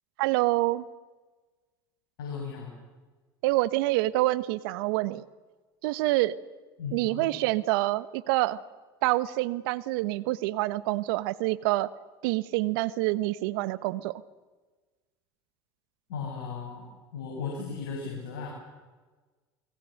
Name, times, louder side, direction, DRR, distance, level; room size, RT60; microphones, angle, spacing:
voice 1, 0.2-0.8 3.4-5.2 5.8-6.3 6.9-8.6 9.0-11.9 12.2-14.2, right 18 dB, 70° right, 17 dB, 1.2 m, -27 dB
voice 2, 2.2-2.7 6.8-7.3 16.1-18.5, left 5 dB, 75° left, -1 dB, 7.4 m, -36 dB
29.0 x 22.0 x 6.6 m, 1.3 s
hypercardioid pair, 80°, 12 cm